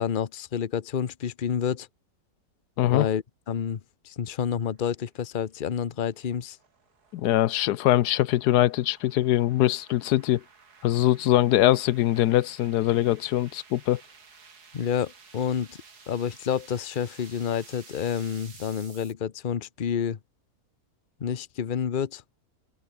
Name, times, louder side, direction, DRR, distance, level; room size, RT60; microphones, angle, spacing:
voice 1, 0.0-1.9 2.9-3.8 4.0-6.6 14.7-15.8 16.1-20.2 21.2-22.2, left 8 dB, 40° left, 0.9 m, -29 dB
voice 2, 2.8-3.1 7.1-10.4 10.8-14.0, left 14 dB, 90° left, 1.2 m, -22 dB
sound 1, 5.2-19.1, right 5 dB, 80° right, 3.0 m, -53 dB
open air
omnidirectional pair, 1.7 m